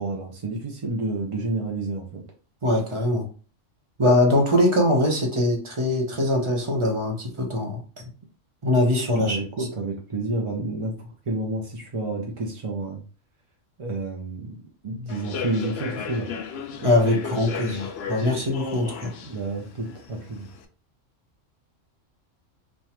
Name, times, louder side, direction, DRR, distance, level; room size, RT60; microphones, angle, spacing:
voice 1, 0.0-2.2 9.1-13.0 13.8-16.3 19.2-20.5, right 2 dB, 50° right, 0 dB, 0.4 m, -30 dB
voice 2, 2.6-3.3 4.0-7.8 8.6-9.4 16.8-19.1, left 1 dB, 30° right, 1 dB, 0.7 m, -22 dB
Human voice / Subway metro underground, 15.1-20.6, left 6 dB, 65° left, 0.7 m, -35 dB
5.3 x 2.2 x 2.9 m, 0.39 s
omnidirectional pair, 1.3 m